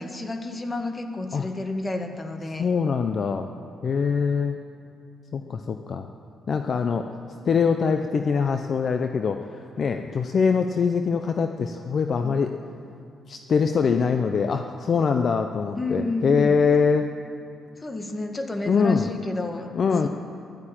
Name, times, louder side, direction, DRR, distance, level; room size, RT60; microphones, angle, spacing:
voice 1, 0.0-2.7 12.2-12.3 15.8-16.5 17.8-19.7 20.0-20.1, left 2 dB, 25° left, 5 dB, 1.6 m, -30 dB
voice 2, 2.6-3.5 3.8-4.6 5.3-6.1 6.5-7.1 7.4-12.5 13.3-17.1 18.7-19.1 19.7-20.1, left 5 dB, 50° left, 6 dB, 0.7 m, -23 dB
13.0 x 12.0 x 8.9 m, 2.7 s
cardioid pair, 90°, 0 cm